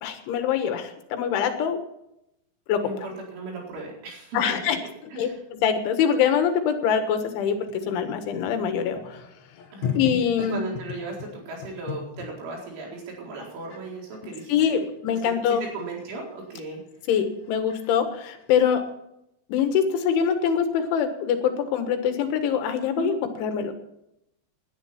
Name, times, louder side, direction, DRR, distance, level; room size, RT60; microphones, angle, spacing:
voice 1, 0.0-1.8 2.7-2.8 4.3-4.8 5.2-9.2 10.0-10.6 14.5-15.7 17.1-18.8 19.5-23.7, left 7 dB, 80° left, 7 dB, 3.8 m, -24 dB
voice 2, 2.8-4.6 5.1-5.4 9.7-10.0 10.5-14.8 15.2-16.8 23.0-23.1, right 3 dB, 80° right, -2 dB, 6.8 m, -36 dB
sound 1, 7.6-12.3 12.8-13.0 13.7-13.8 14.1-18.9, left 7 dB, 50° left, 2.4 m, -37 dB
18.5 x 11.0 x 4.4 m, 0.81 s
omnidirectional pair, 5.5 m